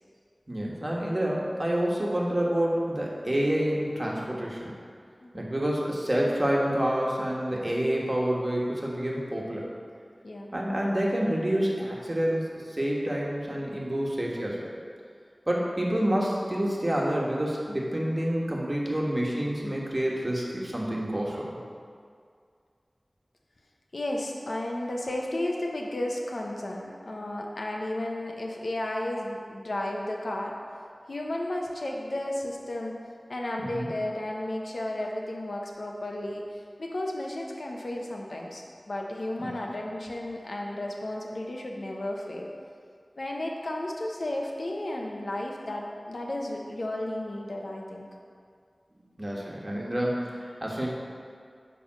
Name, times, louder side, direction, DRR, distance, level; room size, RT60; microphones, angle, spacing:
voice 1, 0.5-4.7 5.3-9.6 10.5-14.7 15.5-21.6 33.6-33.9 39.4-39.5 49.2-50.9, right 1 dB, 35° right, -3 dB, 1.4 m, -28 dB
voice 2, 10.2-10.5 23.9-30.5 31.1-32.9 33.3-36.4 36.8-42.5 43.2-48.1, left 1 dB, 85° left, 0 dB, 0.9 m, -33 dB
9.3 x 3.5 x 6.2 m, 2.2 s
wide cardioid pair, 60°, 0 cm